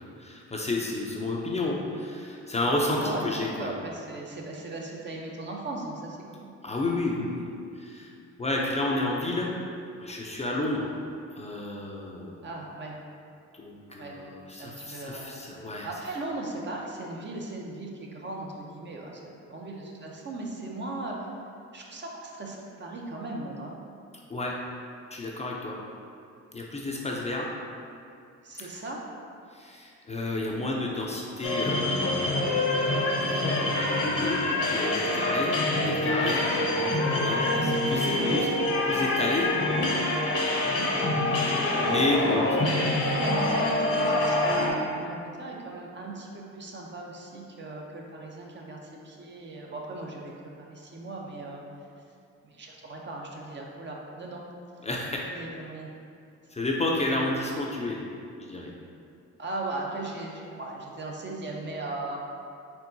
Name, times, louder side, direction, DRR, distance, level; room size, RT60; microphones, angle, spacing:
voice 1, 0.0-3.7 6.6-7.5 7.8-8.1 8.4-9.5 10.0-10.9 11.4-12.5 13.6-16.2 24.3-24.5 25.1-25.8 26.5-27.5 29.5-32.8 33.2-38.5 38.8-39.5 41.8-42.6 54.8-55.4 56.5-58.0 58.5-58.7, left 2 dB, 20° left, -2 dB, 0.5 m, -31 dB
voice 2, 3.0-6.5 12.4-13.0 14.0-14.1 14.6-21.2 21.7-23.7 28.4-29.0 35.7-37.1 37.4-38.4 40.7-40.9 42.6-51.6 52.5-54.4 55.2-55.9 59.4-62.2, right 2 dB, 35° right, -1 dB, 0.7 m, -38 dB
sound 1, 31.4-44.7, left 2 dB, 50° left, 0.8 m, -26 dB
4.5 x 3.6 x 2.7 m, 2.5 s
cardioid pair, 90°, 30 cm